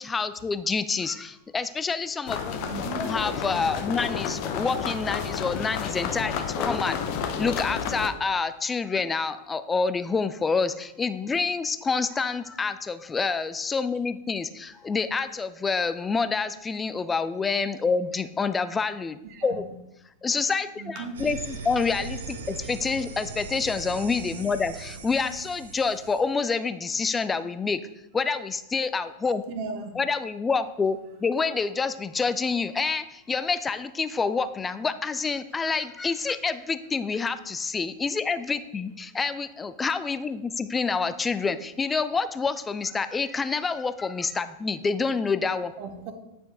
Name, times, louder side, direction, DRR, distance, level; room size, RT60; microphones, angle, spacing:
voice 1, 0.0-2.6 3.0-19.6 20.2-27.8 28.1-29.4 30.0-45.7, left 4 dB, 15° left, 12 dB, 0.4 m, -27 dB
sound 1, 2.3-8.1, left 7 dB, 45° left, 0.7 m, -31 dB
voice 2, 2.6-3.0 19.2-19.8 20.8-21.2 29.5-30.0 45.8-46.1, right 4 dB, 45° right, 6 dB, 1.1 m, -36 dB
sound 2, 21.1-26.2, right 4 dB, 65° right, 0.8 m, -39 dB
8.9 x 5.2 x 3.7 m, 0.88 s
figure-of-eight pair, 90°, 0 cm